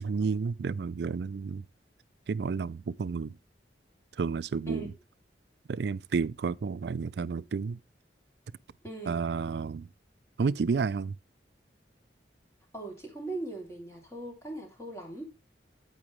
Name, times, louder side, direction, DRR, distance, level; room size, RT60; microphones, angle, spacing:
voice 1, 0.0-1.6 2.3-3.4 4.2-4.9 5.7-7.8 9.1-9.9 10.4-11.2, right 5 dB, 65° right, 0.4 m, -31 dB
voice 2, 8.8-9.2 12.7-15.3, right 2 dB, 15° left, 2.8 m, -39 dB
8.9 x 8.7 x 3.1 m
head